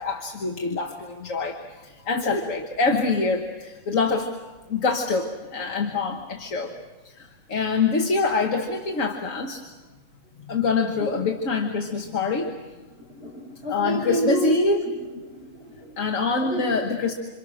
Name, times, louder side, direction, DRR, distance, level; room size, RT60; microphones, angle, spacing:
voice 1, 0.0-4.3 4.7-6.7 7.1-9.6 10.5-12.5 13.7-14.8 16.0-17.1, left 4 dB, 75° left, 3 dB, 1.8 m, -25 dB
voice 2, 12.9-14.9 15.2-16.0 16.4-16.6, equal, 50° left, -3 dB, 7.8 m, -30 dB
27.5 x 27.0 x 6.3 m, 1.3 s
omnidirectional pair, 1.4 m